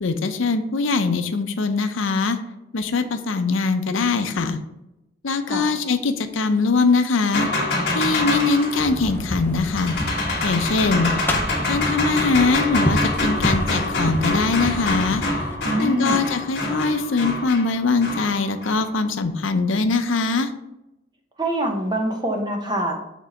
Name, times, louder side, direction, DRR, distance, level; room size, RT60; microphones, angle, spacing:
voice 1, 0.0-2.4 2.7-4.6 5.2-7.5 7.9-10.0 10.4-11.1 11.7-15.2 15.8-20.5, left 4 dB, 80° left, 8 dB, 0.6 m, -22 dB
sound 1, 7.3-18.9, left 2 dB, 55° left, 1.7 m, -26 dB
sound 2, 8.8-15.6, left 1 dB, 10° left, 0.6 m, -28 dB
voice 2, 15.6-16.3 21.4-23.0, right 1 dB, 20° right, 2 dB, 0.9 m, -24 dB
7.2 x 3.7 x 4.3 m, 0.90 s
head